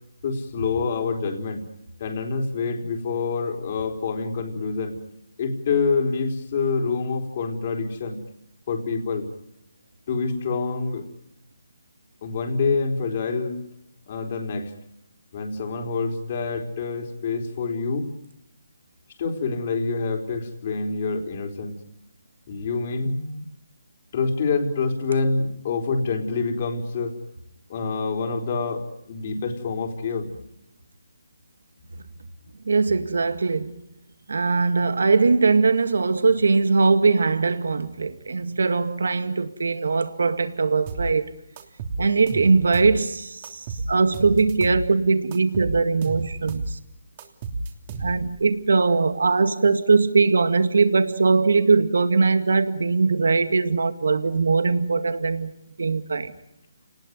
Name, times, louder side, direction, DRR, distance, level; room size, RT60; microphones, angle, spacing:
voice 1, 0.2-1.7 2.0-5.0 5.4-8.2 8.7-9.3 10.1-11.1 12.2-13.6 14.1-14.7 15.3-18.1 19.2-21.8 22.5-23.4 24.1-27.1 27.7-30.4, left 4 dB, 35° left, 4.1 m, -26 dB
voice 2, 32.7-33.7 34.3-41.3 42.0-46.8 48.0-55.5 55.8-56.3, right 4 dB, 75° right, 2.0 m, -21 dB
sound 1, 40.9-41.1 41.6-43.0 43.4-44.9 45.3-46.7 47.2-48.4, right 3 dB, 30° right, 3.1 m, -31 dB
29.5 x 19.5 x 9.7 m
hypercardioid pair, 165°, 0 cm